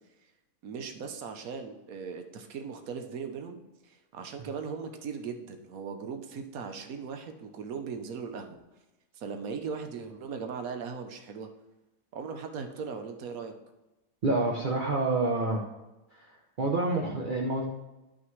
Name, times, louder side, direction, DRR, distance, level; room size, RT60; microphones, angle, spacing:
voice 1, 0.6-8.6 9.1-11.5 12.1-13.5, right 5 dB, 85° right, 6 dB, 1.2 m, -38 dB
voice 2, 14.2-15.6 16.1-16.3 16.6-17.6, right 2 dB, 45° right, -1 dB, 0.8 m, -27 dB
11.0 x 5.9 x 3.1 m, 1.0 s
omnidirectional pair, 1.4 m